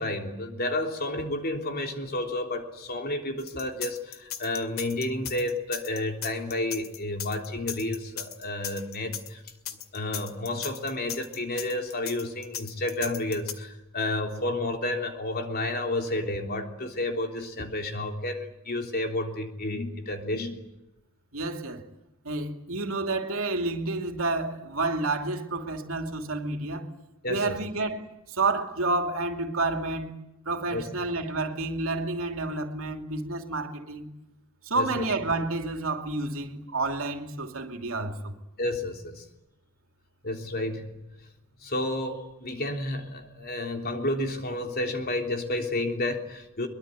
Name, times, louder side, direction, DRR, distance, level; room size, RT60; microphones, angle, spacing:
voice 1, 0.0-9.4 9.9-20.6 27.2-27.6 30.7-30.8 34.8-35.0 38.6-39.2 40.2-40.9 41.6-46.7, left 1 dB, 45° left, 3.5 m, -31 dB
sound 1, 3.4-13.5, left 10 dB, 80° left, 2.3 m, -37 dB
voice 2, 21.3-21.8 22.2-26.9 27.3-30.2 30.4-34.1 34.6-38.3, right 3 dB, 80° right, 2.8 m, -30 dB
23.0 x 22.5 x 9.5 m
head